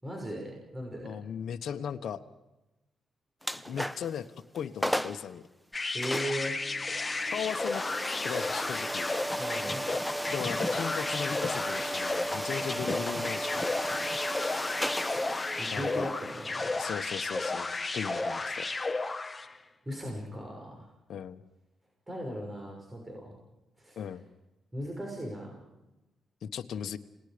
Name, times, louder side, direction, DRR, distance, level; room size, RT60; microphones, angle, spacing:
voice 1, 0.0-1.2 5.9-6.6 9.4-9.9 12.7-13.0 15.6-16.9 19.4-20.9 22.1-23.4 23.8-24.0 24.7-25.6, equal, 20° right, 1 dB, 6.2 m, -38 dB
voice 2, 1.0-2.2 3.6-4.3 4.5-5.4 7.3-9.1 10.3-13.8 15.7-16.1 16.8-18.7 21.1-21.4 24.0-24.2 26.4-27.0, left 8 dB, 70° left, 9 dB, 1.1 m, -37 dB
sound 1, 3.4-4.2 4.6-4.7 4.8-5.3 6.0-18.7, equal, ahead, 1.0 m, -35 dB
sound 2, 5.7-19.6, left 3 dB, 25° left, 1.3 m, -33 dB
29.0 x 19.5 x 5.1 m, 1.0 s
cardioid pair, 70°, 0 cm